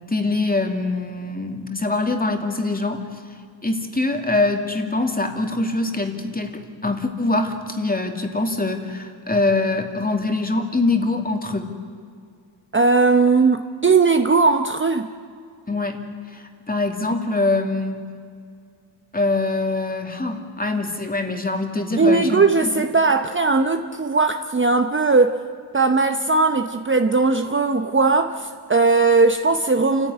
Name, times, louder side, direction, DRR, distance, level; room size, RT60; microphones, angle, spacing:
voice 1, 0.1-3.0 3.6-11.7 15.7-16.0 16.3-18.1 19.1-22.7, left 2 dB, 20° left, 2.6 m, -24 dB
voice 2, 12.7-15.1 22.0-25.4 25.7-30.1, right 4 dB, 25° right, 0.9 m, -18 dB
28.5 x 15.0 x 9.8 m
wide cardioid pair, 105°, 49 cm